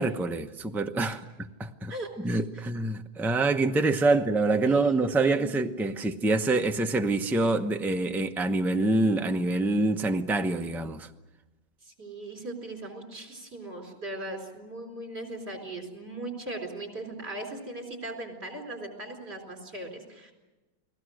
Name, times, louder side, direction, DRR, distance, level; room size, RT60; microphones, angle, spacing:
voice 1, 0.0-1.9 2.2-11.1, right 2 dB, ahead, 0.5 m, -26 dB
voice 2, 1.9-2.6 4.1-4.2 4.7-5.7 11.8-20.3, right 2 dB, 35° right, 4.5 m, -39 dB
30.0 x 20.0 x 6.4 m
omnidirectional pair, 1.8 m